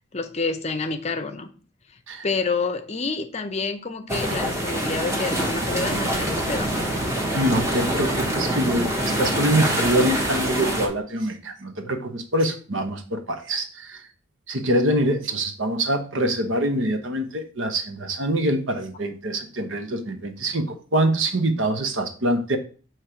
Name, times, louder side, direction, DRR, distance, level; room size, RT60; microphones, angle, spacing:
voice 1, 0.1-1.5 2.2-6.7, left 4 dB, 35° left, 0.6 m, -28 dB
sound 1, 4.1-10.9, right 1 dB, 15° right, 1.0 m, -25 dB
voice 2, 7.3-14.0 14.5-22.6, right 1 dB, 80° right, 1.0 m, -24 dB
6.5 x 3.2 x 5.7 m
head